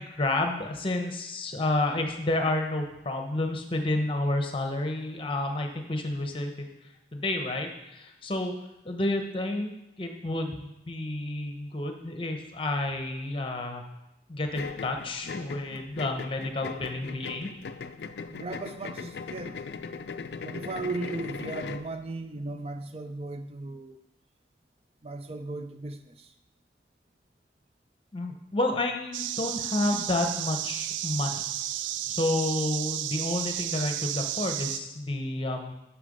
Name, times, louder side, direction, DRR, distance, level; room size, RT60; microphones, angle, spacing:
voice 1, 0.0-6.7 7.1-8.5 8.8-9.7 10.0-13.8 14.3-17.5 28.1-31.4 32.1-35.7, left 2 dB, 30° left, 4 dB, 0.9 m, -30 dB
sound 1, 14.5-21.9, left 5 dB, 65° left, 0.4 m, -39 dB
voice 2, 18.3-19.6 20.4-24.0 25.0-26.3 29.6-30.0, right 2 dB, 35° right, 8 dB, 0.5 m, -37 dB
sound 2, 29.1-34.8, right 12 dB, 85° right, 0.3 m, -32 dB
6.7 x 6.2 x 5.3 m, 0.93 s
head